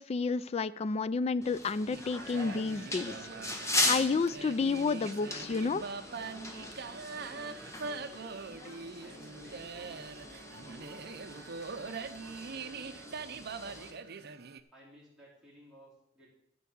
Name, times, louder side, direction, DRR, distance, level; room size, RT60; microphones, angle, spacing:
voice 1, 0.0-3.3 3.9-5.8, left 4 dB, 35° left, 17 dB, 0.3 m, -30 dB
sound 1, 1.4-13.9, left 1 dB, 15° left, 1.6 m, -39 dB
sound 2, 1.9-14.6, right 4 dB, 55° right, 0.6 m, -43 dB
voice 2, 7.2-8.4 9.0-11.3 12.0-14.0 14.7-16.3, equal, 5° right, -6 dB, 4.2 m, -56 dB
14.0 x 4.7 x 7.0 m, 0.77 s
head